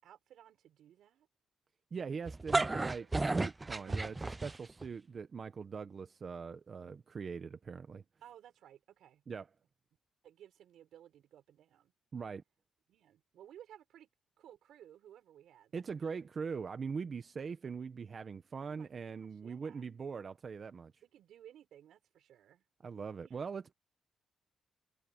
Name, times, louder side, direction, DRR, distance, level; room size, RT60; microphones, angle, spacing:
voice 1, 0.0-1.3 2.7-3.1 3.8-4.2 8.2-9.2 10.2-11.9 12.9-14.1 14.4-15.8 16.1-16.2 18.6-19.8 21.0-22.6 23.2-23.4, right 10 dB, 75° right, 5.6 m, -58 dB
voice 2, 1.9-4.1 4.4-8.0 9.3-9.5 12.1-12.4 15.7-20.9 22.8-23.7, right 5 dB, 35° right, 0.8 m, -41 dB
sound 1, 2.3-4.9, right 2 dB, 15° right, 0.3 m, -33 dB
wide cardioid pair, 170°, 0 cm